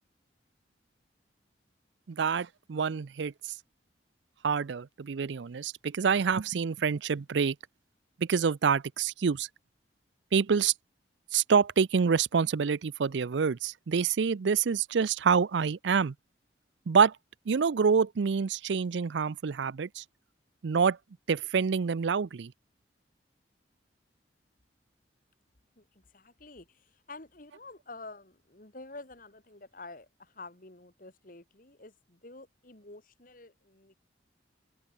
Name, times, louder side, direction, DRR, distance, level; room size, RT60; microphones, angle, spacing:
voice 1, 2.1-3.3 4.4-7.6 8.2-9.5 10.3-10.7 11.3-16.1 16.9-17.1 17.5-20.0 20.6-21.0 21.3-22.5, right 6 dB, 75° right, 0.5 m, -27 dB
voice 2, 25.8-33.9, left 3 dB, 50° left, 2.1 m, -49 dB
head